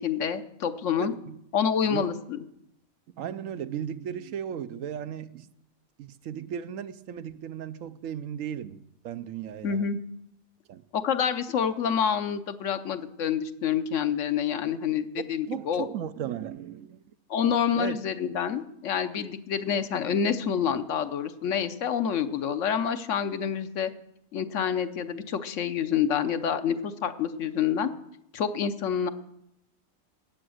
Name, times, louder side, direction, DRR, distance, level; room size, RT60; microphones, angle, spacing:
voice 1, 0.0-1.1 1.5-2.4 9.6-10.0 10.9-15.9 17.3-23.9 24.3-27.9 28.3-29.1, left 7 dB, 65° left, 1.1 m, -27 dB
voice 2, 1.0-1.4 1.9-2.1 3.2-5.5 6.0-9.9 10.7-10.8 15.5-17.0 17.8-18.0, right 9 dB, 75° right, 1.0 m, -36 dB
14.0 x 8.8 x 6.3 m
omnidirectional pair, 1.4 m